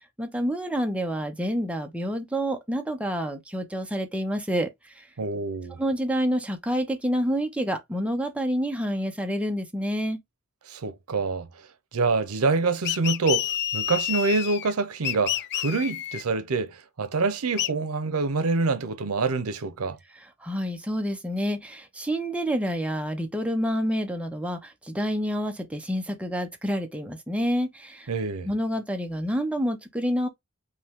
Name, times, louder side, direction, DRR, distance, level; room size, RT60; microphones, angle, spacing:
voice 1, 0.2-5.1 5.8-10.2 20.1-28.1 28.5-30.3, equal, 5° right, 0.6 m, -28 dB
voice 2, 5.2-5.8 10.7-11.5 11.9-20.0 28.1-28.5, right 4 dB, 85° right, 0.7 m, -26 dB
sound 1, 12.8-14.7 15.0-16.2 17.6-17.7, left 12 dB, 50° left, 0.3 m, -29 dB
5.4 x 2.2 x 3.5 m
head